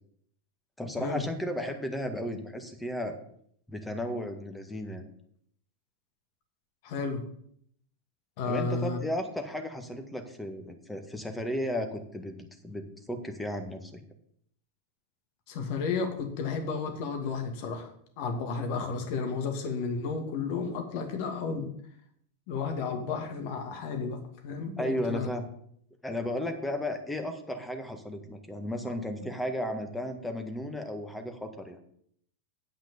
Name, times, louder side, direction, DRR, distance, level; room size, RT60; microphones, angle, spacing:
voice 1, 0.8-3.2 3.7-5.0 8.4-14.0 24.8-25.5 26.0-31.8, left 1 dB, 5° left, 6 dB, 1.6 m, -34 dB
voice 2, 6.8-7.2 8.4-9.0 15.5-21.7 22.5-24.2 24.4-25.3, left 4 dB, 55° left, 5 dB, 2.3 m, -32 dB
8.8 x 5.8 x 7.1 m, 0.66 s
figure-of-eight pair, 90°, 0 cm